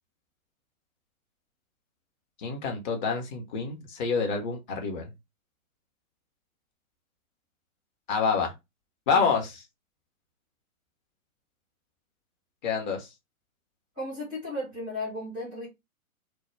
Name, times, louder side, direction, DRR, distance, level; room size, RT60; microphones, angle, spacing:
voice 1, 2.4-5.1 8.1-8.5 9.1-9.6 12.6-13.1, left 5 dB, 30° left, 0.8 m, -27 dB
voice 2, 14.0-15.7, left 1 dB, ahead, 0.3 m, -35 dB
2.2 x 2.1 x 3.1 m
figure-of-eight pair, 120°, 43 cm